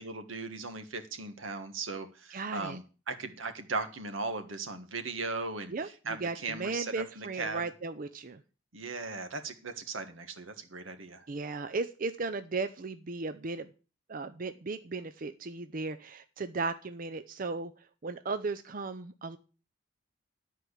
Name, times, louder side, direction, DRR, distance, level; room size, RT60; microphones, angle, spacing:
voice 1, 0.0-5.7 6.0-7.7 8.7-11.3, right 3 dB, 90° right, 8 dB, 1.5 m, -38 dB
voice 2, 2.3-2.8 5.7-8.4 11.3-13.7 14.1-17.7 18.0-19.4, right 3 dB, 45° right, 10 dB, 0.5 m, -36 dB
12.0 x 4.6 x 8.0 m, 0.36 s
head